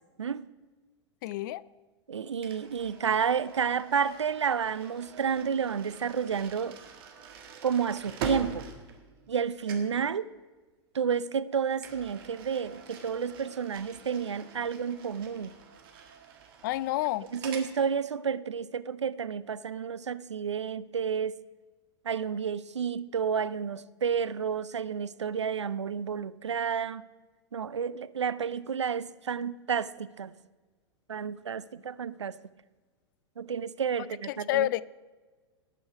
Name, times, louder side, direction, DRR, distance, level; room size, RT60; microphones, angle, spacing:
voice 1, 1.2-1.6 16.6-17.3 34.3-34.8, left 15 dB, 45° left, 0.4 m, -29 dB
voice 2, 2.1-6.8 7.6-8.7 9.3-10.3 10.9-15.5 17.3-21.4 22.0-27.0 27.5-30.3 31.1-32.4 33.4-34.7, right 7 dB, 80° right, 0.4 m, -30 dB
sound 1, 2.4-9.4 9.7-10.0 11.8-17.7, right 6 dB, 55° right, 1.7 m, -44 dB
18.5 x 6.2 x 4.8 m
figure-of-eight pair, 95°, 15 cm